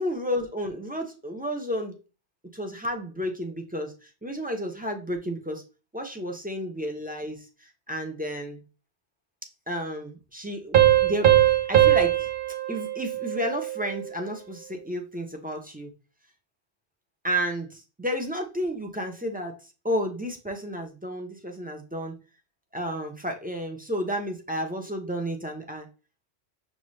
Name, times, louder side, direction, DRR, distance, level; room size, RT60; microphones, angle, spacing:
voice 1, 0.0-2.0 2.5-5.6 5.9-7.5 7.9-8.6 9.7-12.3 12.7-15.9 17.2-22.1 22.7-25.9, equal, 10° right, 2 dB, 0.4 m, -32 dB
Piano, 10.7-14.0, right 12 dB, 55° right, 0.7 m, -21 dB
5.4 x 2.5 x 3.1 m, 0.32 s
omnidirectional pair, 1.1 m